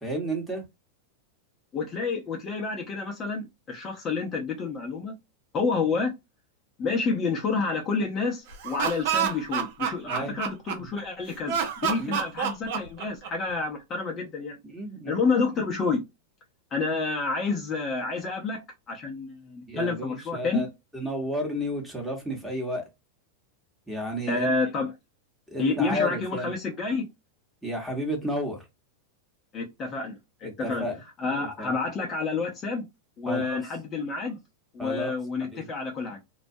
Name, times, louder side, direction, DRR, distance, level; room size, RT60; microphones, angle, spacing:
voice 1, 0.0-0.6 10.0-10.3 10.8-10.9 12.0-12.2 14.6-15.2 19.7-20.7 20.9-22.8 23.9-24.5 25.5-26.5 27.6-28.6 30.4-31.0 31.6-31.7 33.3-33.6 34.8-35.2 35.4-35.7, equal, 5° right, 1.0 m, -32 dB
voice 2, 1.7-5.1 5.5-6.1 6.8-14.6 15.1-16.0 16.7-20.6 24.3-24.9 25.6-27.1 29.5-30.9 31.2-32.9 33.2-34.4 34.7-36.2, left 4 dB, 30° left, 0.7 m, -29 dB
Laughter, 8.5-11.0 11.5-13.5, right 8 dB, 60° right, 0.6 m, -28 dB
2.3 x 2.1 x 2.6 m
hypercardioid pair, 105°, 0 cm